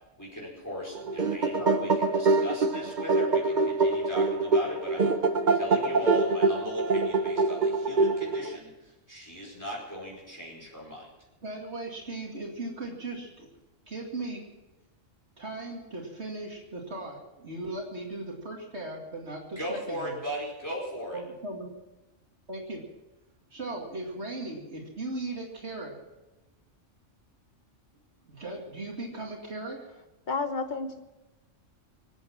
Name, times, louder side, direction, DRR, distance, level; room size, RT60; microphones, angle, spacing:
voice 1, 0.2-5.1 5.5-11.1 19.6-21.2, equal, 15° left, -3 dB, 4.9 m, -38 dB
sound 1, 1.0-8.6, right 3 dB, 40° right, 1.0 m, -25 dB
voice 2, 11.4-13.5 13.9-14.4 15.4-20.2 21.1-21.7 22.5-22.8 23.5-26.0 28.3-29.8, right 2 dB, 60° right, 0 dB, 2.6 m, -37 dB
voice 3, 30.3-31.0, left 4 dB, 40° left, 8 dB, 1.2 m, -31 dB
25.5 x 8.8 x 6.0 m, 1.0 s
omnidirectional pair, 1.3 m